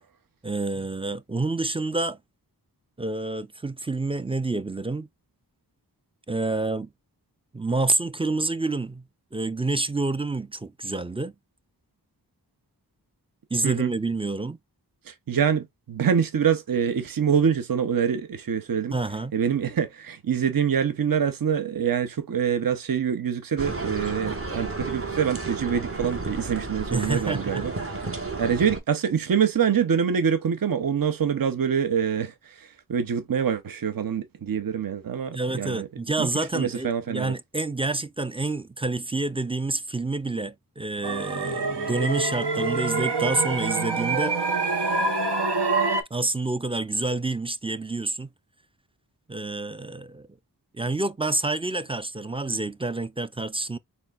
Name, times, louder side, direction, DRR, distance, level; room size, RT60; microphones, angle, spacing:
voice 1, 0.4-2.2 3.0-5.1 6.3-6.9 7.5-9.0 9.3-11.3 13.5-14.6 18.9-19.3 26.9-27.6 35.3-44.4 46.1-48.3 49.3-50.3 50.7-53.8, right 2 dB, 15° right, 0.4 m, -28 dB
voice 2, 15.1-18.9 19.3-27.7 28.1-35.9 36.2-36.3 36.5-37.3, right 7 dB, 60° right, 0.7 m, -25 dB
sound 1, 23.6-28.8, right 3 dB, 35° right, 1.2 m, -32 dB
sound 2, 41.0-46.0, right 3 dB, 85° right, 1.0 m, -26 dB
4.3 x 3.4 x 2.4 m
wide cardioid pair, 45°, 39 cm